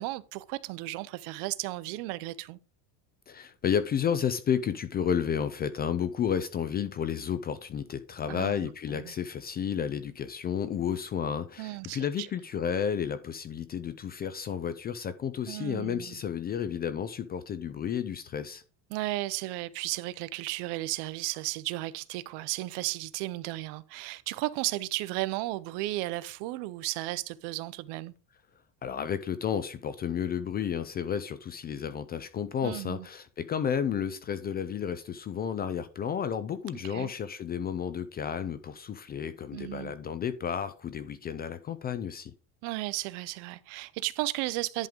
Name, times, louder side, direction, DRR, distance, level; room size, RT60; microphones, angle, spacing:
voice 1, 0.0-2.6 8.3-8.5 8.9-9.1 11.6-12.3 15.5-16.2 18.9-28.1 32.6-33.1 36.9-37.1 39.5-39.9 42.6-44.9, right 18 dB, 65° right, 0.7 m, -34 dB
voice 2, 3.3-18.6 28.8-42.3, left 8 dB, 25° left, 0.3 m, -32 dB
10.5 x 3.7 x 5.0 m
cardioid pair, 135°, 44 cm